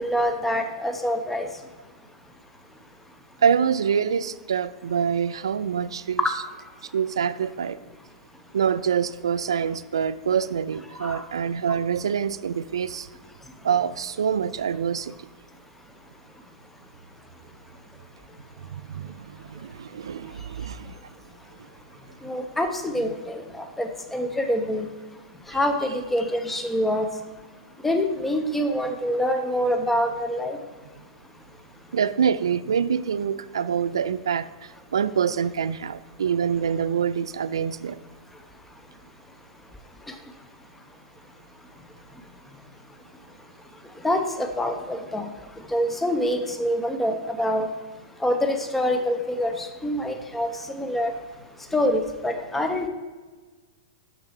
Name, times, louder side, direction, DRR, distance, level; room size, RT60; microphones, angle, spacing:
voice 1, 0.0-1.5 11.0-11.2 22.2-23.4 23.8-24.9 25.5-27.1 27.8-30.6 44.0-45.3 45.7-47.7 48.2-51.1 51.7-52.9, left 1 dB, 5° left, 5 dB, 0.8 m, -25 dB
voice 2, 3.4-6.2 6.9-7.8 8.5-13.1 13.6-15.1 18.9-20.9 31.9-34.5 34.9-38.0, right 7 dB, 70° right, 15 dB, 0.3 m, -25 dB
6.4 x 6.0 x 4.6 m, 1.3 s
figure-of-eight pair, 105°, 3 cm